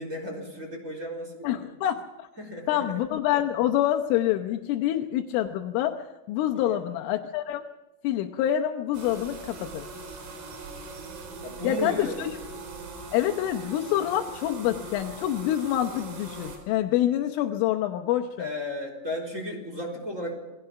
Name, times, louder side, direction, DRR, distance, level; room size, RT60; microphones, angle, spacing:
voice 1, 0.0-1.6 2.4-3.0 6.5-6.8 11.4-12.2 18.4-20.4, left 1 dB, 15° right, 1 dB, 3.6 m, -34 dB
voice 2, 1.4-2.3 2.7-7.6 8.0-9.9 11.6-12.3 13.1-18.5, left 12 dB, 80° left, 4 dB, 3.5 m, -26 dB
sound 1, 8.9-16.6, right 3 dB, 90° right, 6.9 m, -41 dB
27.5 x 20.0 x 5.8 m, 1.1 s
omnidirectional pair, 5.7 m